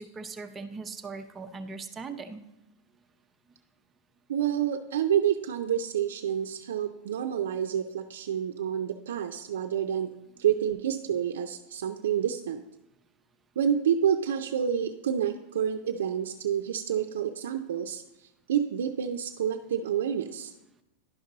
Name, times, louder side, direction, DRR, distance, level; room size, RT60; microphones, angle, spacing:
voice 1, 0.0-2.4, right 4 dB, 15° right, 6 dB, 0.6 m, -39 dB
voice 2, 4.3-10.1 10.4-12.6 13.6-20.5, right 9 dB, 85° right, 4 dB, 0.5 m, -28 dB
11.0 x 5.3 x 3.9 m, 0.92 s
supercardioid pair, 140°, 0 cm